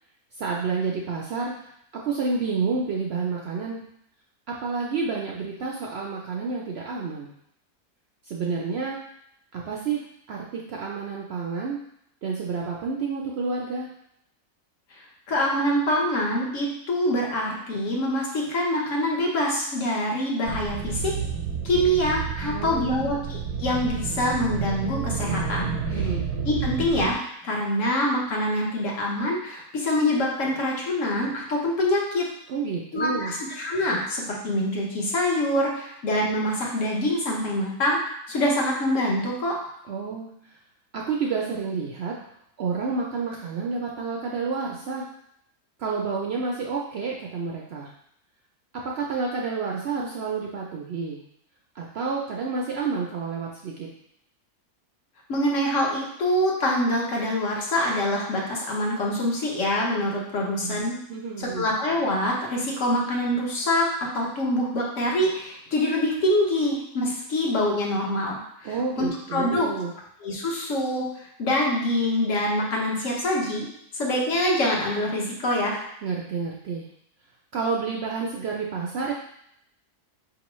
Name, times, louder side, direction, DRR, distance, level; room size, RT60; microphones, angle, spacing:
voice 1, 0.4-1.7 1.9-3.8 4.5-7.3 8.3-9.0 9.5-11.8 12.2-13.9 22.4-23.1 25.9-26.2 32.5-33.3 39.9-40.6 40.9-42.2 42.6-45.1 45.8-47.9 48.7-51.2 51.7-53.9 60.6-61.7 68.6-69.9 76.0-76.9 77.5-79.1, right 4 dB, 75° right, -2 dB, 0.6 m, -29 dB
voice 2, 15.3-21.1 21.6-26.1 26.4-32.2 32.9-38.0 38.3-39.5 55.3-61.0 61.4-63.9 64.1-69.7 70.2-73.7 73.9-75.8, left 1 dB, 60° left, -2 dB, 1.2 m, -25 dB
sound 1, 20.5-27.1, right 6 dB, 90° right, 1.1 m, -30 dB
4.9 x 3.0 x 3.0 m, 0.73 s
omnidirectional pair, 1.6 m